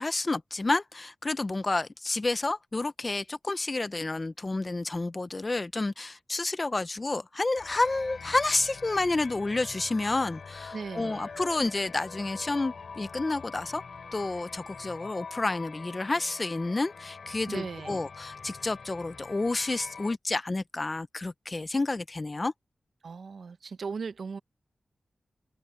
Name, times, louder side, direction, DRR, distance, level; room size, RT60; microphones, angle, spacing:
voice 1, 0.0-13.8 14.1-22.5, left 2 dB, 35° left, 1.0 m, -30 dB
sound 1, 7.6-20.2, left 5 dB, 75° left, 3.5 m, -44 dB
voice 2, 10.7-11.3 17.5-18.0 23.0-24.4, right 5 dB, 80° right, 1.1 m, -37 dB
open air
wide cardioid pair, 70°, 0 cm